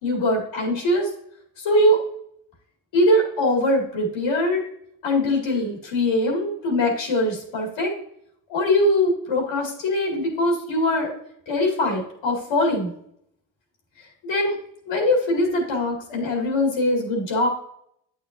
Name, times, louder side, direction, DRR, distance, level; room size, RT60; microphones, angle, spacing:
voice 1, 0.0-1.1 1.6-2.0 2.9-4.6 5.0-7.9 8.5-11.1 11.5-12.9 14.2-14.6 14.9-17.5, left 1 dB, 85° left, -1 dB, 2.3 m, -22 dB
8.2 x 6.6 x 2.6 m, 0.71 s
supercardioid pair, 60°, 46 cm